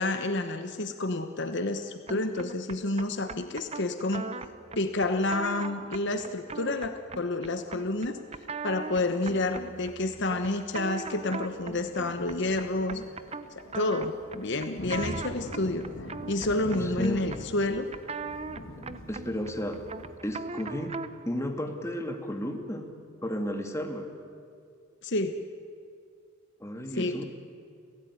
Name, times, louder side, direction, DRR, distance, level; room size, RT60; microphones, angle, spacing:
voice 1, 0.0-4.3 4.8-8.2 8.6-13.0 13.5-15.9 16.3-17.9 25.0-25.4 26.9-27.2, left 2 dB, 60° left, 8 dB, 1.2 m, -29 dB
sound 1, 2.1-21.3, right 4 dB, 30° right, 0.8 m, -40 dB
sound 2, 11.4-20.2, left 1 dB, 80° left, 2.5 m, -43 dB
voice 2, 16.7-17.2 19.1-19.8 20.2-22.9 23.2-24.1 26.6-27.3, left 1 dB, 15° left, 4 dB, 2.2 m, -33 dB
30.0 x 16.0 x 9.7 m, 2.2 s
head